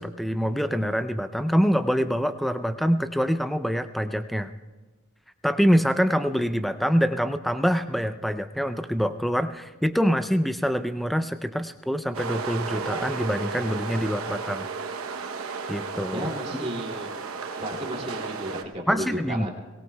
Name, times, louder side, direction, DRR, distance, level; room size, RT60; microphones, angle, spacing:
voice 1, 0.0-4.5 5.4-14.7 15.7-16.3 18.9-19.5, equal, ahead, 10 dB, 0.4 m, -25 dB
sound 1, 12.1-18.6, right 4 dB, 80° right, 0.9 m, -33 dB
voice 2, 16.1-17.1 17.5-19.5, equal, 30° right, -2 dB, 2.5 m, -33 dB
23.0 x 19.0 x 2.3 m, 1.3 s
head